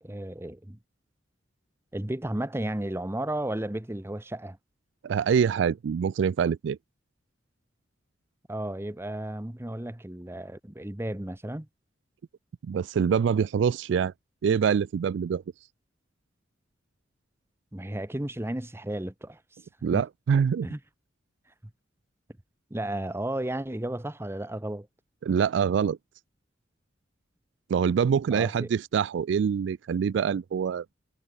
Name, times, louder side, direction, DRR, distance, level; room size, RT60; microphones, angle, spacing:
voice 1, 0.0-0.8 1.9-4.6 8.5-11.7 17.7-19.4 19.9-20.0 20.6-20.8 22.7-24.9 28.3-28.7, right 1 dB, 15° right, 0.9 m, -33 dB
voice 2, 5.0-6.8 12.6-14.1 14.4-15.4 19.8-20.7 25.2-26.0 27.7-30.9, right 7 dB, 65° right, 0.3 m, -25 dB
head